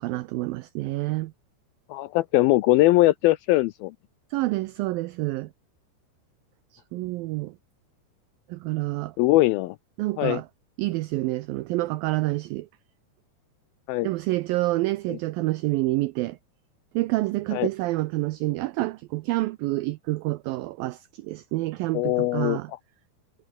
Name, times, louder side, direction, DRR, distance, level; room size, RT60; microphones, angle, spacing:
voice 1, 0.0-1.3 4.3-5.5 6.9-7.5 8.5-9.2 10.0-10.5 10.8-12.7 14.0-16.4 16.9-22.7, right 19 dB, 85° right, 2.0 m, -28 dB
voice 2, 1.9-3.9 9.2-9.8 10.2-10.4 13.9-14.1 15.1-15.2 17.5-17.7 21.9-22.6, left 18 dB, 80° left, 2.2 m, -21 dB
omnidirectional pair, 4.9 m